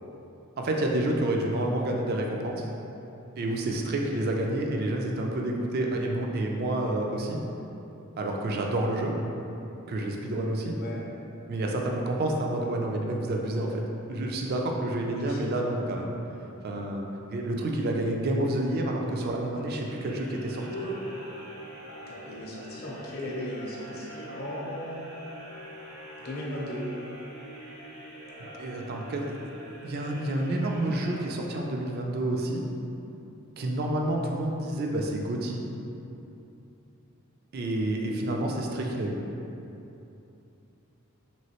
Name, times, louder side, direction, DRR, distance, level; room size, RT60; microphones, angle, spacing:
voice 1, 0.6-2.7 3.4-7.4 8.2-9.1 9.9-10.8 11.5-13.8 14.1-16.1 16.6-17.0 17.3-20.7 28.6-29.4 29.8-32.6 33.6-35.6 37.5-39.2, right 1 dB, 45° right, 0 dB, 0.3 m, -29 dB
voice 2, 3.9-4.2 10.8-11.0 15.1-15.4 20.7-20.9 22.1-25.0 26.2-26.8, left 1 dB, 45° left, -4 dB, 0.6 m, -36 dB
sound 1, 19.6-31.8, right 1 dB, 80° right, 0.8 m, -45 dB
3.0 x 3.0 x 2.9 m, 2.9 s
head